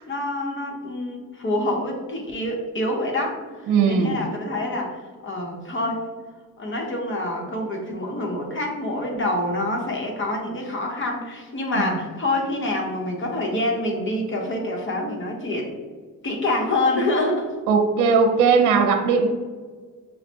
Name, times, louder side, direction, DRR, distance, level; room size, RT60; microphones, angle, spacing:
voice 1, 0.0-6.1 6.6-15.7 16.2-17.5, left 1 dB, 40° left, 1 dB, 1.0 m, -26 dB
voice 2, 3.7-4.2 11.8-12.0 17.7-19.3, right 5 dB, 80° right, 4 dB, 0.6 m, -18 dB
5.6 x 2.1 x 2.8 m, 1.5 s
cardioid pair, 90°, 30 cm